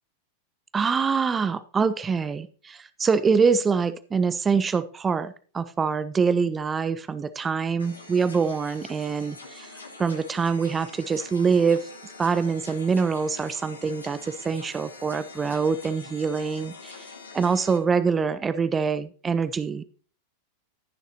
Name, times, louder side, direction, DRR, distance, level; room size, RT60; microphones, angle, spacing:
voice 1, 0.7-11.9 12.2-19.8, right 5 dB, 20° right, 14 dB, 0.4 m, -25 dB
sound 1, 7.8-17.8, left 3 dB, 75° left, 2.1 m, -44 dB
15.0 x 6.6 x 2.9 m, 0.41 s
figure-of-eight pair, 90°, 0 cm